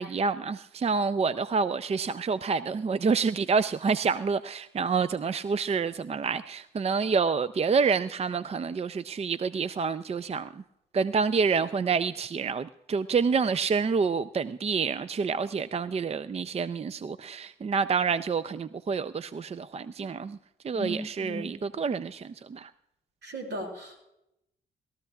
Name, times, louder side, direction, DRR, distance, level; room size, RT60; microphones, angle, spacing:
voice 1, 0.0-10.6 10.9-20.4 20.6-22.7, right 5 dB, 35° right, 0.5 m, -28 dB
voice 2, 20.7-21.4 23.2-24.0, equal, 70° right, 6.0 m, -36 dB
20.5 x 14.0 x 2.4 m
cardioid pair, 65°, 19 cm